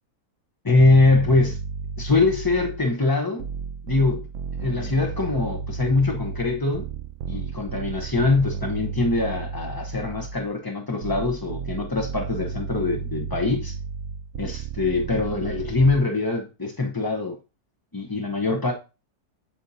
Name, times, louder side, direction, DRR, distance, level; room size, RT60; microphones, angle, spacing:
voice 1, 0.6-1.6 2.0-3.4 3.9-4.3 4.6-6.8 7.3-13.7 14.4-17.4 17.9-18.7, left 3 dB, 25° left, 0.5 m, -23 dB
sound 1, 0.8-2.9 3.4-10.5 11.0-16.0, right 6 dB, 65° right, 0.8 m, -33 dB
8.9 x 6.8 x 2.7 m
omnidirectional pair, 1.7 m